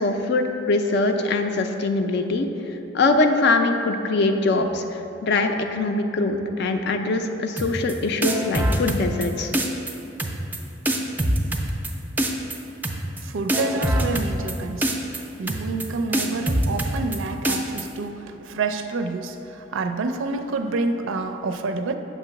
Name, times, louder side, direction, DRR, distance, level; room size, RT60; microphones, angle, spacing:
voice 1, 0.0-9.5, left 3 dB, 60° left, 6 dB, 0.4 m, -23 dB
sound 1, 7.6-7.9 8.2-9.3 9.5-9.9 10.2-10.6 10.8-11.9 12.2-12.6 12.8-13.2 13.5-14.5 14.8-15.2 15.5-15.8 16.1-17.2 17.4-17.8, right 1 dB, 10° right, 0.3 m, -23 dB
voice 2, 13.2-22.0, right 3 dB, 90° right, 7 dB, 0.4 m, -28 dB
7.2 x 3.0 x 5.7 m, 3.0 s
head